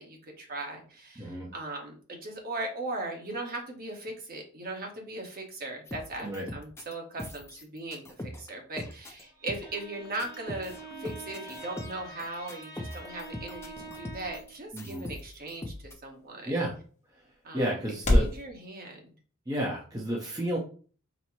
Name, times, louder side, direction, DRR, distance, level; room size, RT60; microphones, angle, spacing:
voice 1, 0.0-16.5 17.4-17.7 18.1-19.0, right 2 dB, 45° right, 1 dB, 1.1 m, -38 dB
voice 2, 1.2-1.5 6.2-6.5 14.7-15.0 16.5-16.8 17.5-18.3 19.5-20.6, right 1 dB, 15° right, -3 dB, 0.7 m, -31 dB
sound 1, 5.9-6.9 7.2-8.5 8.8-9.2 9.5-9.8 10.0-14.5 14.8-15.9, left 1 dB, 10° left, 0.4 m, -42 dB
Bowed string instrument, 9.3-14.6, right 3 dB, 65° right, 1.7 m, -46 dB
sound 2, 12.2-18.4, left 1 dB, 35° left, 0.9 m, -33 dB
4.2 x 2.1 x 4.5 m, 0.40 s
head